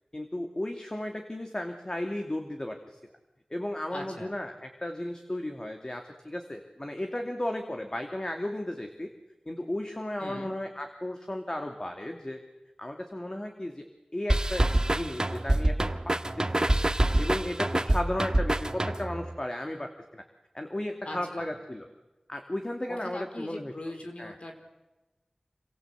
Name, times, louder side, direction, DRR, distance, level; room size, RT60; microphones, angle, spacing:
voice 1, 0.1-3.0 3.5-9.1 9.5-12.4 12.8-13.9 14.1-16.8 17.2-20.2 20.5-21.9 22.3-23.7 24.2-24.4, left 1 dB, 35° left, 4 dB, 2.7 m, -35 dB
voice 2, 3.9-4.4 10.2-10.6 21.0-21.5 22.9-24.5, left 1 dB, 65° left, 4 dB, 4.2 m, -41 dB
sound 1, 14.3-19.3, right 1 dB, 35° right, 1.6 m, -26 dB
27.5 x 23.5 x 8.2 m, 1.1 s
wide cardioid pair, 50°, 2 cm